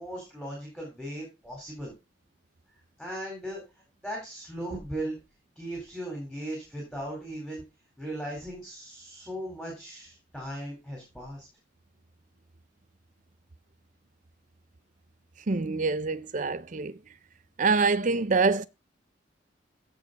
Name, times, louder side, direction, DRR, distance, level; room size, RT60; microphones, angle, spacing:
voice 1, 0.0-1.9 3.0-3.6 4.0-5.2 5.6-7.6 8.0-11.4, right 1 dB, ahead, 4.1 m, -37 dB
voice 2, 15.5-17.0 17.6-18.7, right 4 dB, 45° right, 0.6 m, -25 dB
15.5 x 5.2 x 4.0 m
head